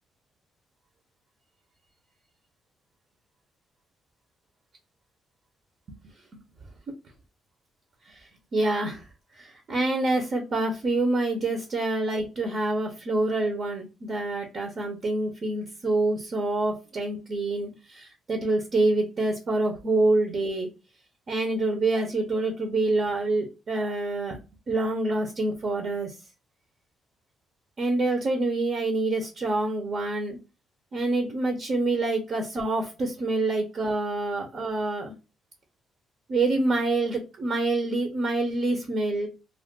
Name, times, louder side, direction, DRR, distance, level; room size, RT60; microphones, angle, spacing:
voice 1, 8.1-9.1 9.3-20.7 21.3-24.4 24.7-26.1 27.8-30.4 30.9-35.1 36.3-39.3, right 2 dB, 50° right, 3 dB, 0.8 m, -26 dB
2.4 x 2.1 x 3.6 m, 0.30 s
cardioid pair, 90°, 0 cm